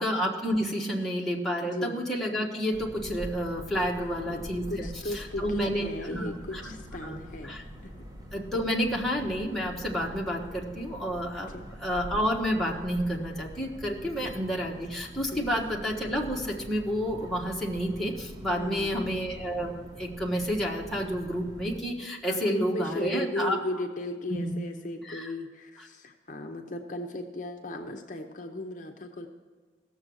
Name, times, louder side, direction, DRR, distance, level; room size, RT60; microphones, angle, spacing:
voice 1, 0.0-4.9 5.1-6.6 7.0-7.2 7.4-7.6 8.3-11.5 11.8-23.6 25.1-25.3, equal, ahead, -3 dB, 1.3 m, -30 dB
voice 2, 1.6-2.0 4.0-7.9 11.4-11.6 14.0-14.4 15.3-15.5 18.5-19.1 22.3-29.3, left 1 dB, 45° left, 4 dB, 0.7 m, -36 dB
sound 1, 2.7-21.8, equal, 20° right, 1.2 m, -44 dB
16.5 x 7.0 x 6.3 m, 1.5 s
head